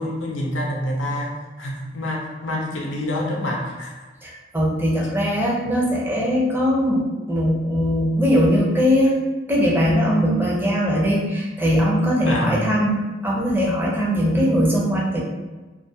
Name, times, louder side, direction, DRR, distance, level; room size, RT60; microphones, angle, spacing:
voice 1, 0.0-4.0 12.2-12.6, left 1 dB, 85° left, -2 dB, 0.6 m, -27 dB
voice 2, 4.2-9.2 9.5-15.2, equal, 10° right, -4 dB, 0.5 m, -20 dB
2.4 x 2.2 x 2.5 m, 1.2 s
head